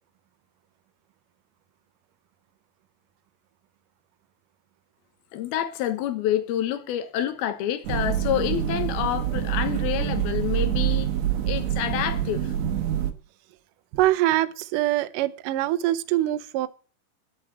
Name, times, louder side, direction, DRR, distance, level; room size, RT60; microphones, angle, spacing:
voice 1, 5.3-11.1 11.5-12.5, left 11 dB, 70° left, 2.9 m, -28 dB
sound 1, 7.8-13.1, right 11 dB, 70° right, 1.6 m, -26 dB
voice 2, 13.9-16.7, right 15 dB, 90° right, 1.9 m, -24 dB
9.9 x 8.6 x 8.3 m
omnidirectional pair, 4.9 m